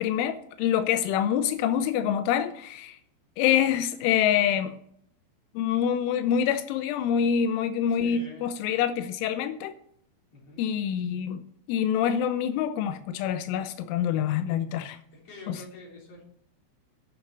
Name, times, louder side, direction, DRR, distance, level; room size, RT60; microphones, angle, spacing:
voice 1, 0.0-3.0 3.4-4.8 5.6-9.7 10.6-11.4 11.7-15.0 15.5-15.6, left 9 dB, 90° left, 3.1 m, -26 dB
voice 2, 7.9-8.6 10.3-10.6 15.1-16.2, left 1 dB, 35° left, 4.1 m, -45 dB
10.5 x 6.0 x 7.9 m
omnidirectional pair, 5.5 m